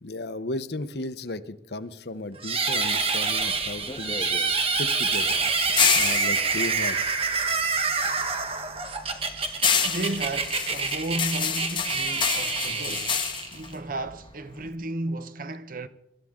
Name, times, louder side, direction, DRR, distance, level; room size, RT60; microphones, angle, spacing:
voice 1, 0.0-4.3 4.7-5.4 5.9-7.0 12.7-13.0, left 2 dB, 60° left, 0.9 m, -35 dB
sound 1, 2.4-13.7, right 4 dB, 30° right, 1.6 m, -27 dB
sound 2, 3.4-7.9 8.2-14.7, left 7 dB, 25° left, 1.3 m, -28 dB
voice 2, 9.8-13.2 13.5-15.9, right 2 dB, 50° right, 0.8 m, -33 dB
25.0 x 13.0 x 3.7 m
head